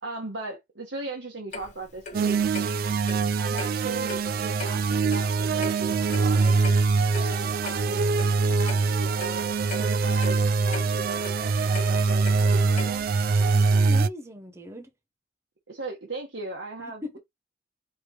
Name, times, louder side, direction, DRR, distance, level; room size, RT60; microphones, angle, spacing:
voice 1, 0.0-2.4 3.4-6.6 7.1-8.1 8.5-13.1 15.7-17.2, right 2 dB, 80° right, 1.3 m, -38 dB
Clock, 1.5-13.2, left 3 dB, 40° left, 1.4 m, -41 dB
sound 1, 2.1-14.1, right 4 dB, 50° right, 0.3 m, -23 dB
voice 2, 13.4-14.9 16.8-17.2, left 2 dB, 15° right, 0.7 m, -39 dB
5.1 x 3.2 x 3.1 m
head